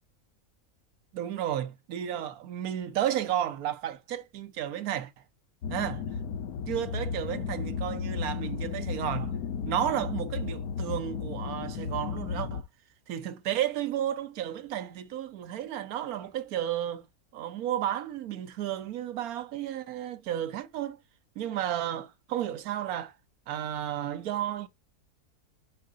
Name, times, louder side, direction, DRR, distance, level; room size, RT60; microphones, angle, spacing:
voice 1, 1.1-5.1 5.7-6.0 6.7-9.4 9.7-12.6 13.1-17.1 17.3-21.0 21.4-23.1 23.5-24.7, right 11 dB, 75° right, 1.2 m, -32 dB
sound 1, 5.6-12.6, left 6 dB, 85° left, 1.2 m, -34 dB
10.5 x 3.7 x 2.5 m
omnidirectional pair, 1.6 m